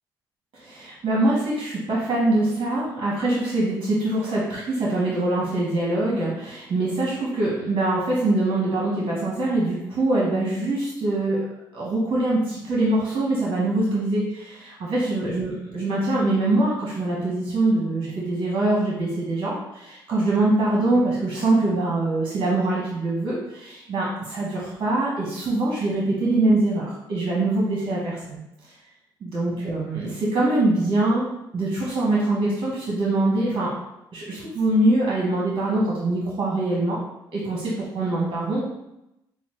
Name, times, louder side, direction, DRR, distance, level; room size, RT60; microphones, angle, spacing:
voice 1, 0.5-11.4 11.7-28.4 29.2-31.3 31.5-33.7 34.1-37.0 37.3-38.7, right 2 dB, 50° right, -5 dB, 1.2 m, -23 dB
6.1 x 2.1 x 3.1 m, 0.86 s
supercardioid pair, 65°, 10 cm